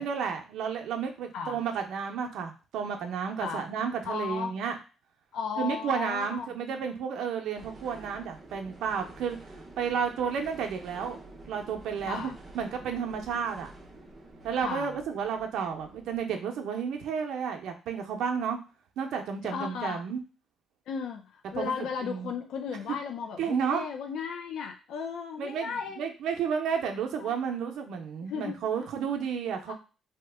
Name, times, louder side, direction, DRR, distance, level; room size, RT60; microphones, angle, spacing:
voice 1, 0.0-4.8 5.6-9.4 9.8-11.2 11.5-13.7 14.4-18.6 19.0-20.2 21.5-21.7 22.0-22.3 23.4-23.8 25.4-29.7, right 7 dB, 70° right, 4 dB, 0.6 m, -32 dB
voice 2, 4.0-4.5 5.3-6.5 12.0-12.4 14.6-15.0 19.4-20.0 20.9-26.1 27.1-27.4 28.2-28.9 29.7-29.8, left 6 dB, 70° left, 4 dB, 0.4 m, -35 dB
sound 1, 7.6-16.2, right 2 dB, 20° right, 0.6 m, -49 dB
2.8 x 2.1 x 3.3 m, 0.33 s
cardioid pair, 160°, 0 cm